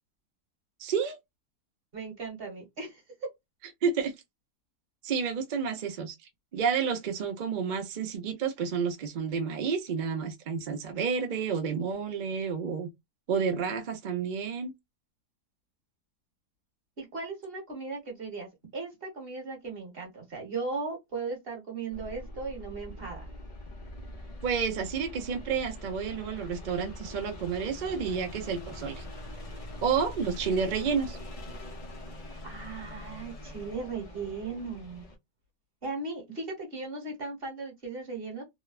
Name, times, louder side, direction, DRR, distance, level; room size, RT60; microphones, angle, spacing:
voice 1, 0.8-1.2 3.8-4.1 5.0-6.2 6.5-12.9 13.3-14.7 24.4-29.0 29.8-31.2, right 6 dB, 75° right, 0.4 m, -30 dB
voice 2, 1.9-3.3 17.0-23.3 32.4-35.0 35.8-38.4, right 4 dB, 40° right, 1.2 m, -37 dB
sound 1, 21.9-35.2, left 1 dB, 50° left, 0.4 m, -43 dB
2.9 x 2.1 x 2.3 m
omnidirectional pair, 1.8 m